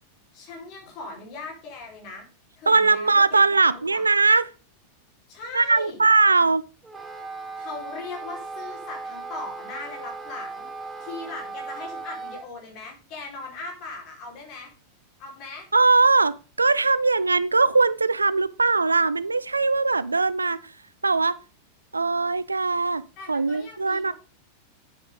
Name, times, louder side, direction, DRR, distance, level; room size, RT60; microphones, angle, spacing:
voice 1, 0.3-2.3 2.6-4.0 5.3-6.0 7.6-10.7 11.0-14.7 15.2-15.7 23.2-24.1, left 3 dB, 40° left, 4.6 m, -39 dB
voice 2, 2.7-4.4 5.5-6.6 15.7-20.7 21.0-21.4 21.9-23.0 23.3-24.1, right 3 dB, 80° right, 0.4 m, -20 dB
Wind instrument woodwind instrument, 6.8-12.5, right 3 dB, 10° right, 1.9 m, -37 dB
9.4 x 8.1 x 3.8 m
figure-of-eight pair, 90°, 0 cm